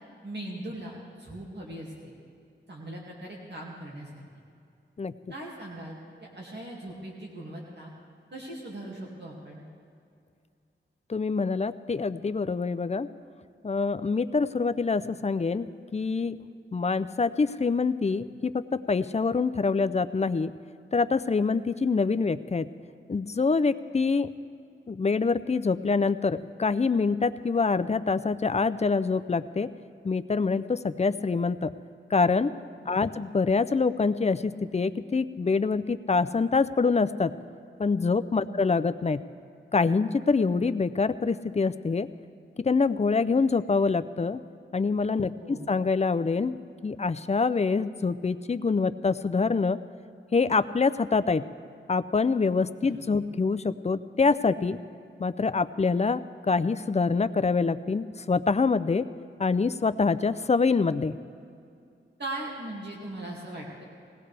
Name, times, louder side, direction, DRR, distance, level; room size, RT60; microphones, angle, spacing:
voice 1, 0.2-2.1 2.7-4.2 5.3-6.0 6.2-7.9 8.3-9.6 32.9-33.2 38.5-38.6 45.4-45.7 52.8-53.3 62.2-63.8, right 1 dB, 60° right, -4 dB, 2.3 m, -40 dB
voice 2, 11.1-13.1 13.6-15.7 15.9-16.4 16.7-20.5 20.9-22.7 23.1-24.3 24.9-29.7 30.0-31.7 32.1-32.5 32.9-37.3 37.8-39.2 39.7-42.1 42.6-44.4 44.7-46.5 46.8-49.8 50.3-51.4 51.9-54.8 55.2-59.1 59.4-61.2, left 4 dB, 35° left, 13 dB, 0.4 m, -25 dB
20.5 x 17.5 x 3.4 m, 2.4 s
wide cardioid pair, 90°, 20 cm